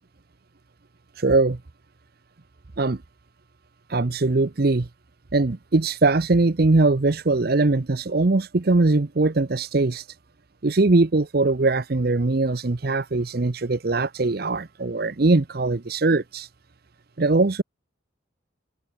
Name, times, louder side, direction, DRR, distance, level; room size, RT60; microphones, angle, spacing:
voice 1, 1.2-1.6 2.8-3.0 3.9-4.9 5.3-10.1 10.6-16.5 17.2-17.6, right 3 dB, 50° right, 0.7 m, -21 dB
head